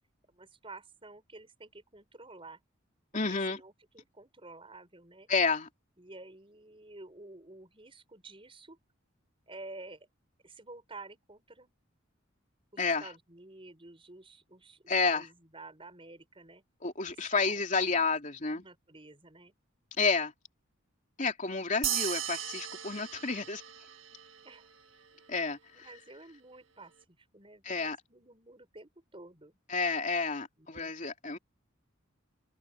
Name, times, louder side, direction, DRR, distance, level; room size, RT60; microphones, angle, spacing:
voice 1, 0.3-2.6 3.3-5.3 6.0-8.8 9.5-10.1 10.4-11.7 12.7-16.6 17.1-17.9 18.5-19.5 24.4-24.7 25.7-29.6 30.6-31.0, right 2 dB, 25° right, 5.9 m, -51 dB
voice 2, 3.1-3.6 5.3-5.7 12.8-13.1 14.9-15.2 16.8-18.6 20.0-20.3 21.2-23.6 25.3-25.9 27.6-28.0 29.7-31.4, left 4 dB, 40° left, 3.2 m, -30 dB
sound 1, 21.8-24.6, right 11 dB, 75° right, 1.5 m, -36 dB
head